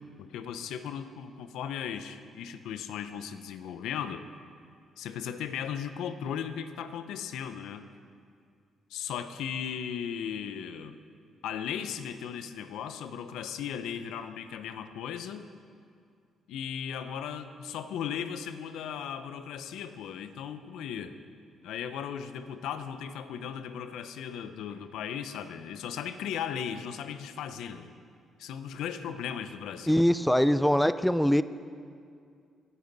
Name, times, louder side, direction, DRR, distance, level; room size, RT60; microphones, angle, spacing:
voice 1, 0.2-4.2 5.0-7.9 8.9-11.0 11.4-15.5 16.5-21.2 21.6-27.9 28.4-30.0, left 8 dB, 85° left, 11 dB, 0.7 m, -37 dB
voice 2, 29.9-31.4, equal, 5° left, 14 dB, 0.4 m, -23 dB
19.5 x 9.8 x 4.0 m, 2.3 s
cardioid pair, 90°, 0 cm